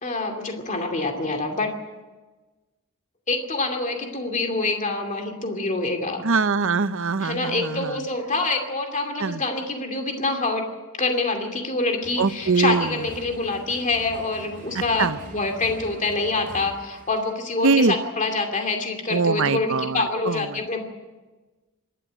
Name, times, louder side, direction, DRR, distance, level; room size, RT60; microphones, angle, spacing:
voice 1, 0.0-1.7 3.3-6.2 7.2-10.7 11.0-20.8, left 3 dB, 35° left, 4 dB, 2.6 m, -26 dB
voice 2, 6.2-8.0 9.2-9.4 12.2-12.9 15.0-15.2 17.6-17.9 19.1-20.6, right 4 dB, 65° right, 14 dB, 0.8 m, -23 dB
sound 1, 12.0-17.3, right 1 dB, 40° right, 4.4 m, -43 dB
26.5 x 12.5 x 9.0 m, 1.2 s
head